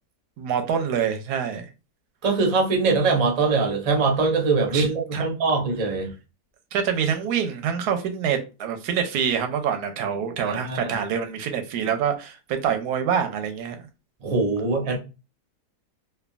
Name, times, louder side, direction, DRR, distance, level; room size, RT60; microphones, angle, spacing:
voice 1, 0.4-1.7 4.7-5.2 6.7-13.9, right 7 dB, 85° right, 7 dB, 1.1 m, -26 dB
voice 2, 2.2-6.1 10.4-11.0 14.2-15.0, right 4 dB, 40° right, 1 dB, 0.4 m, -22 dB
3.4 x 2.1 x 2.2 m, 0.30 s
omnidirectional pair, 1.7 m